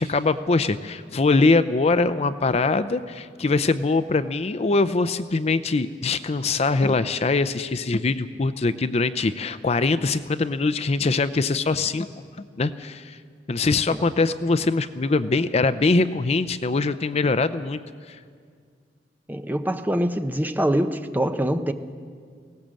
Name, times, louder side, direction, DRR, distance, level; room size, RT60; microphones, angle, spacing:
voice 1, 0.0-12.1 12.4-13.2 13.5-17.8, left 3 dB, 35° left, 12 dB, 0.5 m, -22 dB
voice 2, 19.3-21.7, right 1 dB, 10° right, 8 dB, 0.8 m, -24 dB
19.5 x 18.0 x 7.5 m, 2.1 s
head